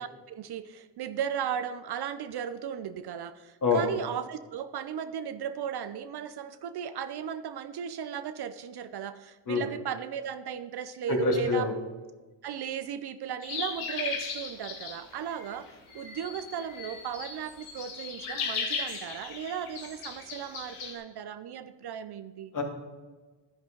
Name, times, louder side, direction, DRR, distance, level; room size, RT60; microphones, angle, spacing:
voice 1, 0.0-11.7 12.4-15.7 15.9-22.5, right 8 dB, 55° right, 12 dB, 0.7 m, -36 dB
voice 2, 11.1-11.8 22.5-22.6, left 4 dB, 40° left, 1 dB, 2.6 m, -26 dB
sound 1, 13.4-20.9, left 5 dB, 90° left, 2.5 m, -37 dB
11.0 x 10.5 x 3.9 m, 1.3 s
cardioid pair, 100°, 48 cm